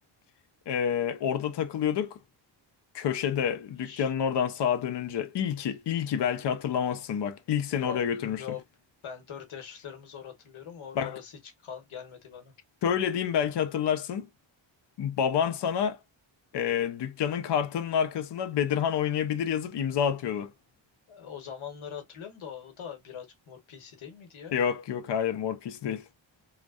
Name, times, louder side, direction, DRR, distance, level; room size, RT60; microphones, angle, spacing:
voice 1, 0.7-2.2 2.9-8.4 11.0-11.1 12.8-14.3 15.0-16.0 16.5-20.5 24.5-26.0, left 8 dB, 60° left, 0.5 m, -28 dB
voice 2, 7.7-8.6 9.0-12.5 21.1-24.5, left 8 dB, 90° left, 0.9 m, -42 dB
2.6 x 2.1 x 2.3 m
wide cardioid pair, 105°, 47 cm